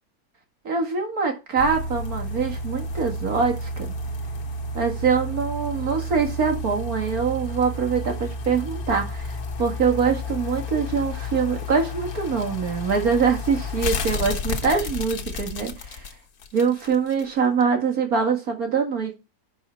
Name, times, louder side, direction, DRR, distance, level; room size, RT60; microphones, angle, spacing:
voice 1, 0.6-3.9 4.7-16.1 16.5-19.1, right 5 dB, 75° right, 2.3 m, -24 dB
sound 1, 1.6-17.2 17.6-17.7, left 2 dB, 80° left, 1.6 m, -31 dB
10.5 x 4.8 x 4.4 m
omnidirectional pair, 1.6 m